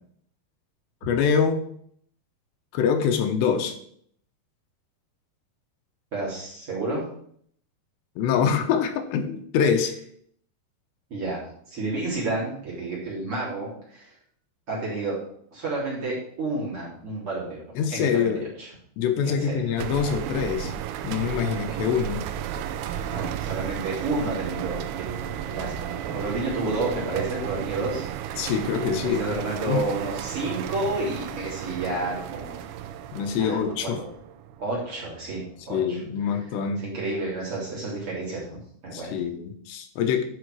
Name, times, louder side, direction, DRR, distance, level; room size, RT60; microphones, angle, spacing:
voice 1, 1.0-1.7 2.7-3.8 8.2-9.9 17.8-18.5 19.0-20.7 21.0-22.2 28.4-29.2 29.6-30.0 33.1-34.0 35.7-36.8 38.9-40.2, left 7 dB, 85° left, 6 dB, 3.2 m, -25 dB
voice 2, 6.1-7.0 11.1-14.1 14.7-15.2 15.5-17.6 17.9-18.3 18.6-18.7 19.2-19.7 23.0-28.1 29.0-32.6 33.4-34.1 34.6-36.0 36.8-39.2, right 2 dB, 35° right, -6 dB, 3.5 m, -30 dB
sound 1, 19.8-35.2, right 10 dB, 80° right, 2.4 m, -33 dB
10.5 x 5.7 x 4.7 m, 0.64 s
omnidirectional pair, 4.8 m